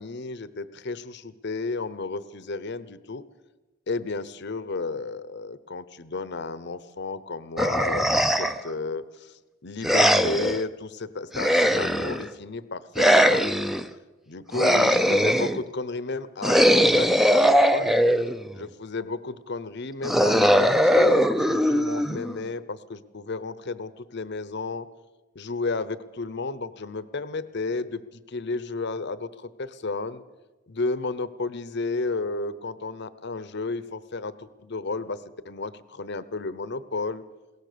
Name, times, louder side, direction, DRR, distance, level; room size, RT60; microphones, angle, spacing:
voice 1, 0.0-3.2 3.9-13.7 14.3-17.9 18.5-24.9 25.3-30.2 30.7-37.2, left 3 dB, 60° left, 16 dB, 0.9 m, -32 dB
sound 1, 7.6-8.7 9.8-10.6 11.3-12.3 12.9-13.8 14.5-15.6 16.4-18.5 20.0-22.4, equal, ahead, 0.6 m, -20 dB
21.5 x 17.5 x 6.9 m, 1.2 s
head